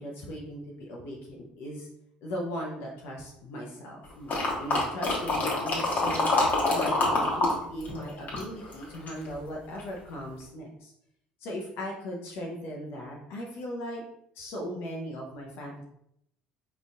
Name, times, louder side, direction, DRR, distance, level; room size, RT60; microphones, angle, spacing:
voice 1, 0.0-1.9 2.2-6.3 6.7-10.9 11.4-14.0 14.3-15.8, equal, 55° left, -1 dB, 0.7 m, -38 dB
sound 1, 4.3-7.5 7.8-9.3 9.8-9.9, left 2 dB, 35° left, 1.2 m, -26 dB
5.1 x 2.5 x 2.4 m, 0.75 s
figure-of-eight pair, 60°, 5 cm